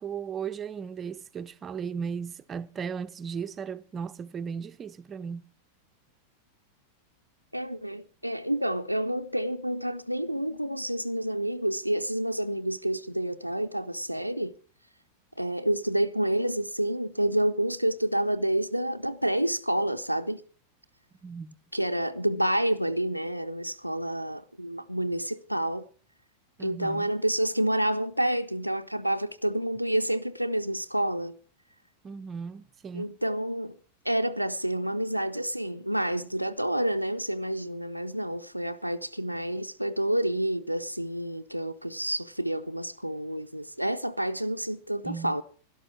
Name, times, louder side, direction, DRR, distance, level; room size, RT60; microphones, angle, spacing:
voice 1, 0.0-5.4 21.2-21.5 26.6-27.1 32.0-33.1 45.0-45.3, right 6 dB, 25° right, 0.6 m, -36 dB
voice 2, 7.5-14.6 15.4-20.4 21.7-25.9 26.6-31.4 32.9-33.8 34.0-45.4, right 1 dB, 90° right, 0.5 m, -29 dB
12.0 x 12.0 x 5.9 m
figure-of-eight pair, 90°, 0 cm